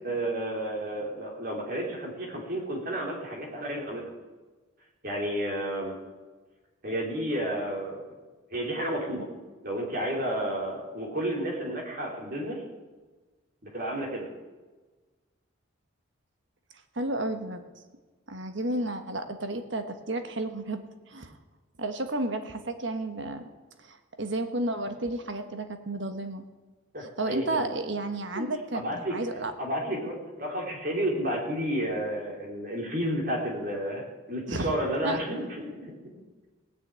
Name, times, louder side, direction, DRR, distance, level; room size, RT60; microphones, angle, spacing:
voice 1, 0.0-4.1 5.0-5.9 6.8-8.0 8.5-9.3 9.6-12.6 13.6-14.3 26.9-27.7 28.4-28.5 28.7-29.2 29.6-34.0 34.3-36.2, right 1 dB, 45° right, -2 dB, 3.5 m, -31 dB
voice 2, 16.9-17.6 18.3-21.3 21.8-23.4 23.8-26.4 27.2-29.5 34.5-34.7 35.0-35.5, right 2 dB, 60° right, 7 dB, 1.3 m, -32 dB
18.0 x 6.6 x 8.9 m, 1.3 s
head